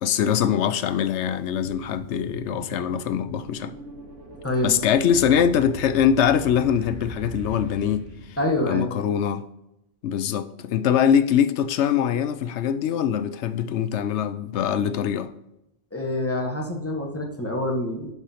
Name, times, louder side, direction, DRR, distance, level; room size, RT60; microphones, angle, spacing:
voice 1, 0.0-3.7 4.6-8.0 8.7-9.4 10.0-15.3, left 8 dB, 75° left, 0.9 m, -23 dB
sound 1, 0.6-0.7 1.3-8.9, right 1 dB, 75° right, 2.0 m, -41 dB
voice 2, 4.4-4.8 8.4-8.9 15.9-18.1, left 1 dB, 10° left, 1.4 m, -26 dB
11.5 x 4.9 x 2.9 m
omnidirectional pair, 1.2 m